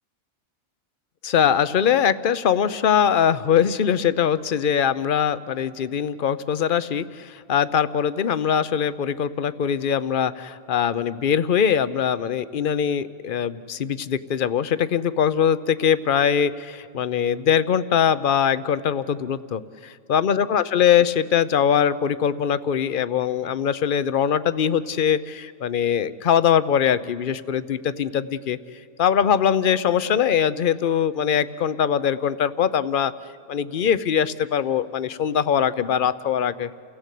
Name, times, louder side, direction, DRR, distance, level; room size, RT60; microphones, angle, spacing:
voice 1, 1.2-28.6 29.0-33.1 33.5-36.7, left 8 dB, 45° left, 14 dB, 0.8 m, -22 dB
29.5 x 17.0 x 8.4 m, 2.3 s
omnidirectional pair, 1.4 m